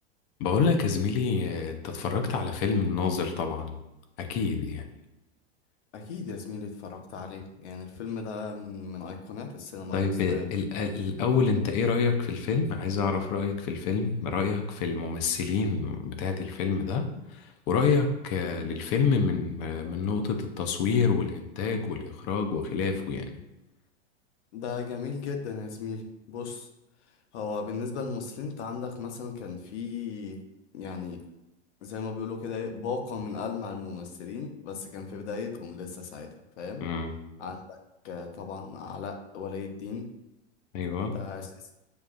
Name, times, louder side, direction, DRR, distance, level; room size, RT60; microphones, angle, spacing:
voice 1, 0.4-3.8 4.2-4.8 9.9-23.4 36.8-37.1 40.7-41.2, left 5 dB, 35° left, 6 dB, 0.4 m, -27 dB
voice 2, 5.9-10.5 24.5-26.7 27.3-30.4 30.7-31.2 31.8-36.8 37.4-37.8 38.0-40.1 41.1-41.7, left 5 dB, 75° left, 4 dB, 0.8 m, -36 dB
6.7 x 2.3 x 2.4 m, 0.95 s
supercardioid pair, 145°, 34 cm